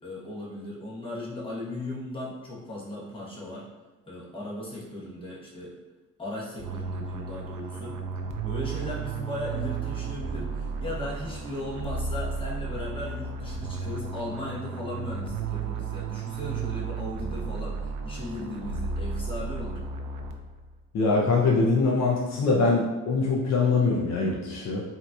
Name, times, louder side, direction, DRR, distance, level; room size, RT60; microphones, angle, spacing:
voice 1, 0.0-3.7 4.1-5.7 6.2-8.0 8.4-19.8, left 1 dB, 15° left, -5 dB, 1.1 m, -37 dB
sound 1, 6.6-20.7, right 5 dB, 85° right, 0.5 m, -33 dB
voice 2, 20.9-24.8, left 3 dB, 60° left, -2 dB, 0.6 m, -23 dB
3.8 x 2.8 x 2.3 m, 1.2 s
cardioid pair, 90°, 30 cm